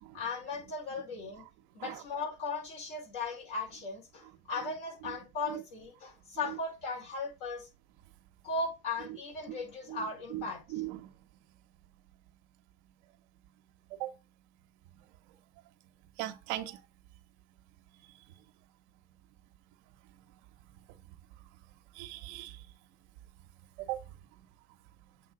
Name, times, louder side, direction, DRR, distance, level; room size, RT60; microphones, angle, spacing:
voice 1, 0.1-1.5 1.7-7.7 8.4-10.8, left 3 dB, 65° left, 4.6 m, -37 dB
voice 2, 10.7-11.1 13.9-14.1 16.2-16.8 22.0-22.5 23.8-24.0, right 16 dB, 80° right, 1.0 m, -37 dB
7.6 x 3.7 x 4.9 m
supercardioid pair, 90°, 34 cm